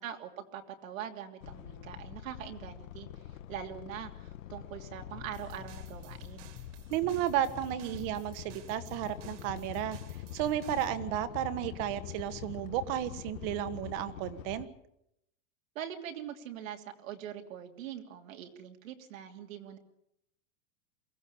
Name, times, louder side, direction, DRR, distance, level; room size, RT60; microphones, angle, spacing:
voice 1, 0.0-3.1 3.5-6.5 15.7-19.8, right 9 dB, 85° right, 4 dB, 3.1 m, -43 dB
sound 1, 1.4-14.7, left 11 dB, 80° left, 1.6 m, -45 dB
sound 2, 5.1-12.7, left 7 dB, 20° left, 1.6 m, -55 dB
sound 3, 5.3-11.0, right 9 dB, 65° right, 2.9 m, -57 dB
voice 2, 6.9-14.7, right 11 dB, 45° right, 12 dB, 1.6 m, -33 dB
23.0 x 16.5 x 8.7 m, 0.79 s
supercardioid pair, 155°, 39 cm